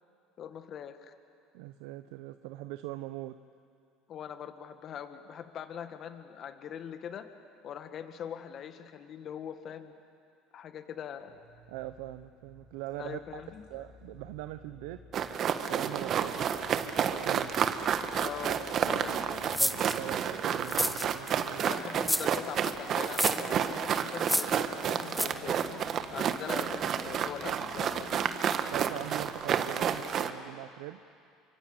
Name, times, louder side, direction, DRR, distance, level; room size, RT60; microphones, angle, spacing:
voice 1, 0.4-1.1 4.1-7.3 7.6-9.9 10.5-11.4 13.0-13.6 18.2-19.4 21.6-25.6 26.1-28.2, left 8 dB, 50° left, 8 dB, 1.9 m, -42 dB
voice 2, 1.5-3.4 11.7-13.4 13.7-15.0 15.6-17.6 19.6-21.8 26.2-26.3 28.7-31.0, right 16 dB, 75° right, 11 dB, 0.8 m, -42 dB
sound 1, 11.3-29.7, left 5 dB, 65° left, 3.4 m, -53 dB
sound 2, 15.1-30.3, right 8 dB, 50° right, 1.5 m, -30 dB
sound 3, 19.5-20.0 20.6-21.3 22.0-22.4 23.1-23.5 24.2-24.6 25.1-25.3, equal, ahead, 1.3 m, -29 dB
28.5 x 24.5 x 8.2 m, 2.5 s
supercardioid pair, 85°, 0 cm